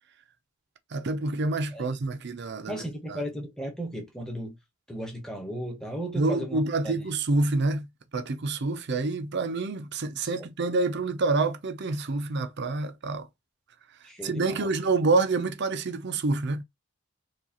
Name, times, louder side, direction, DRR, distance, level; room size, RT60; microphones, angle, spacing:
voice 1, 0.9-2.8 3.1-3.2 6.2-7.9 8.1-13.3 14.2-16.6, right 3 dB, 50° right, 0.5 m, -27 dB
voice 2, 2.7-4.6 4.9-7.0 10.2-10.5 14.0-14.7, right 1 dB, 5° left, 0.9 m, -36 dB
4.6 x 2.4 x 2.8 m
head